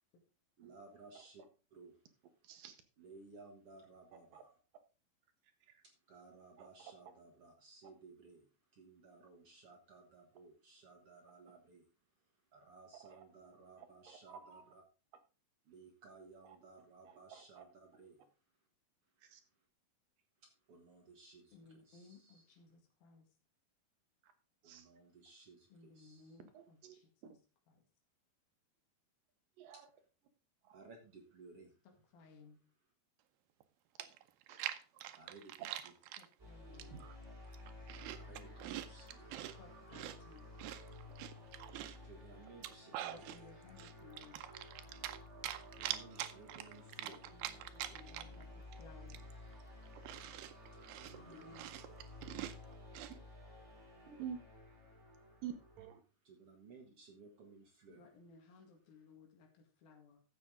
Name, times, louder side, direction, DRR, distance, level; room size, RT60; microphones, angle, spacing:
voice 1, 0.6-1.4 1.7-2.0 3.0-4.6 5.8-11.9 12.5-14.8 15.7-18.2 20.4-22.4 24.6-26.3 29.7-29.8 30.7-31.7 35.1-35.9 38.1-39.3 42.0-43.2 45.8-47.2 50.9-51.6 56.2-58.1, right 3 dB, 50° right, 2 dB, 2.0 m, -58 dB
voice 2, 2.4-2.8 4.3-4.4 5.7-5.8 6.6-6.7 13.0-13.2 13.8-14.6 17.1-17.6 19.2-19.4 24.7-24.9 26.5-26.9 27.2-27.3 29.6-29.8 30.7-30.8 34.0-34.1 34.5-34.7 35.6-35.7 36.9-37.0 54.1-54.4 55.4-56.0, right 9 dB, 70° right, 8 dB, 2.5 m, -49 dB
voice 3, 21.5-23.3 25.7-27.4 27.7-27.9 31.8-32.6 36.2-37.0 39.6-40.5 43.0-44.5 47.0-49.2 51.2-51.8 57.9-60.2, left 4 dB, 75° left, 3 dB, 3.7 m, -60 dB
Chewing mastication, 33.6-33.7 34.0-36.3 36.8-37.2 37.5-39.6 39.9-42.1 42.5-43.4 43.8-45.2 45.4-48.4 48.7-48.8 49.1-53.2, right 13 dB, 85° right, 2.6 m, -45 dB
sound 1, 36.4-55.9, left 1 dB, 20° right, 4.0 m, -54 dB
12.0 x 7.7 x 3.7 m, 0.33 s
omnidirectional pair, 4.3 m